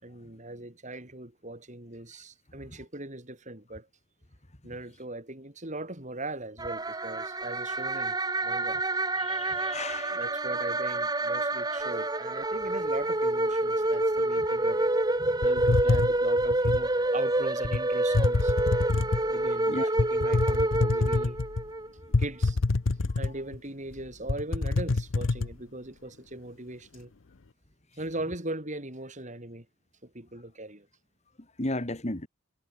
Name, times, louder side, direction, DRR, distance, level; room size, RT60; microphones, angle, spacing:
voice 1, 0.0-3.9 4.6-8.8 10.1-14.8 15.4-18.5 19.3-21.4 22.2-22.6 23.2-27.1 28.0-29.7 30.0-30.9, right 2 dB, 40° right, 5.6 m, -39 dB
sound 1, 6.6-21.9, right 2 dB, 20° right, 2.9 m, -28 dB
voice 2, 9.2-10.2 15.2-15.4 19.7-19.9 31.6-32.3, left 2 dB, 35° left, 2.2 m, -34 dB
sound 2, 15.4-16.9 17.6-17.8 18.1-19.3 20.0-21.6 22.1-23.6 23.9-24.0 24.3-25.5, left 3 dB, 75° left, 0.8 m, -26 dB
head